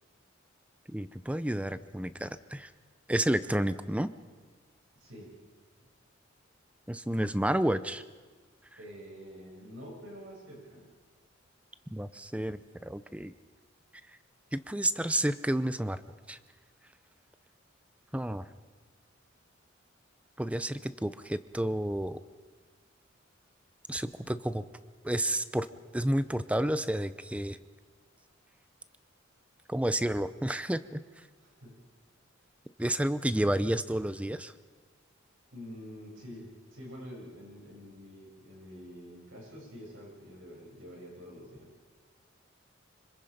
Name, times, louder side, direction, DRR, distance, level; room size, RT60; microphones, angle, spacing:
voice 1, 0.9-2.7 3.1-4.1 6.9-8.0 11.9-13.3 14.5-16.0 16.3-16.4 18.1-18.4 20.4-22.2 23.9-24.6 25.0-25.7 25.9-27.6 29.7-31.0 32.8-34.5, right 1 dB, 5° right, 13 dB, 0.6 m, -30 dB
voice 2, 5.0-5.3 8.8-10.9 31.4-31.8 35.5-41.7, equal, 75° right, -2 dB, 7.6 m, -47 dB
26.0 x 25.5 x 5.2 m, 1.4 s
head